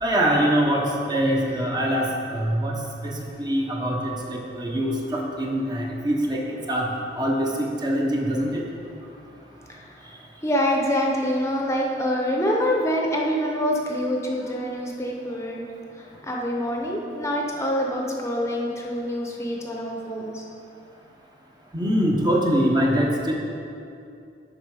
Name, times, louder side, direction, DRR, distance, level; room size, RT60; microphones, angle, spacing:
voice 1, 0.0-2.7 3.0-6.4 6.7-6.9 7.2-8.6 21.7-23.3, equal, 25° right, -1 dB, 1.0 m, -23 dB
voice 2, 10.4-15.6 16.2-20.4, equal, 15° left, -1 dB, 0.8 m, -25 dB
11.5 x 4.4 x 4.8 m, 2.6 s
head